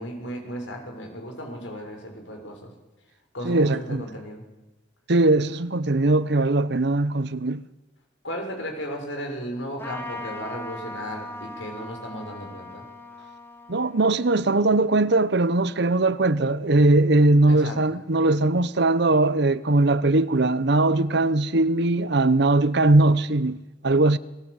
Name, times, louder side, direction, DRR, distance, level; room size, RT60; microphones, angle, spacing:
voice 1, 0.0-2.7 3.3-4.4 8.2-12.8 17.5-18.0, equal, 85° left, 6.4 m, -35 dB
voice 2, 3.4-4.1 5.1-7.6 13.7-24.2, right 2 dB, 65° right, 1.0 m, -20 dB
Trumpet, 9.8-15.6, left 1 dB, 15° left, 2.9 m, -40 dB
30.0 x 19.5 x 8.3 m
head